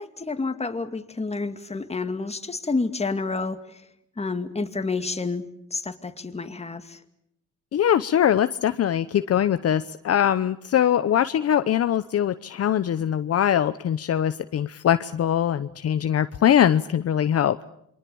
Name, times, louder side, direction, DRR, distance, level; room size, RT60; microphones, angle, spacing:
voice 1, 0.0-3.8 4.2-7.0, left 3 dB, 20° left, 8 dB, 2.4 m, -29 dB
voice 2, 7.7-17.6, left 10 dB, 55° left, 12 dB, 0.9 m, -22 dB
27.5 x 24.0 x 7.1 m, 0.76 s
cardioid pair, 90°, 30 cm